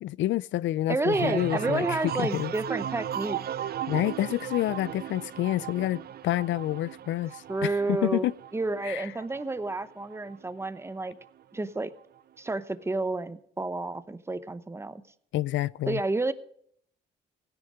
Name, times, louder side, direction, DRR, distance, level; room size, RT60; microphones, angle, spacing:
voice 1, 0.0-2.5 3.9-8.3 8.8-9.1 15.3-16.0, left 14 dB, 70° left, 0.4 m, -28 dB
voice 2, 0.9-3.4 7.5-8.3 8.5-11.2 11.5-11.9 12.4-15.0 15.8-16.3, right 2 dB, 15° right, 0.8 m, -30 dB
sound 1, 1.1-10.7 11.0-11.6, right 10 dB, 50° right, 0.5 m, -36 dB
16.5 x 10.0 x 5.0 m
cardioid pair, 90°, 20 cm